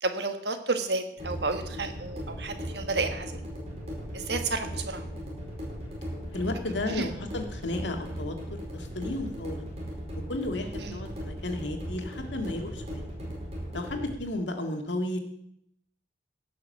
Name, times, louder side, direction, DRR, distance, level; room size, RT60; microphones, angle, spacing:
voice 1, 0.0-3.4 4.1-5.0 6.9-7.1 10.8-11.0, right 3 dB, 70° right, 7 dB, 1.4 m, -31 dB
sound 1, 1.2-14.2, equal, 35° right, 4.5 m, -38 dB
voice 2, 6.3-8.3 8.7-9.7 10.3-13.1 13.7-15.2, left 2 dB, 85° left, 4 dB, 1.9 m, -33 dB
17.0 x 6.4 x 6.4 m, 0.72 s
head